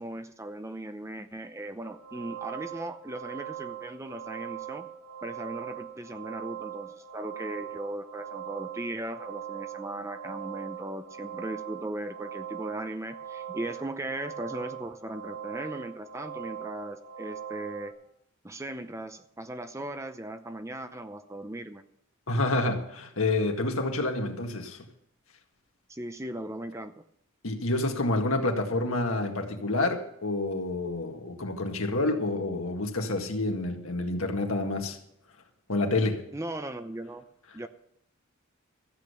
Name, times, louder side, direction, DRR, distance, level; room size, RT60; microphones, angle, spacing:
voice 1, 0.0-4.9 5.2-17.9 18.4-21.8 25.9-27.0 36.3-37.2 37.5-37.7, right 1 dB, 15° right, 0.6 m, -38 dB
sound 1, 1.8-17.9, right 10 dB, 80° right, 1.6 m, -41 dB
voice 2, 22.3-24.8 27.4-35.0 35.7-36.2, left 2 dB, 75° left, 1.9 m, -28 dB
14.0 x 8.2 x 6.8 m
head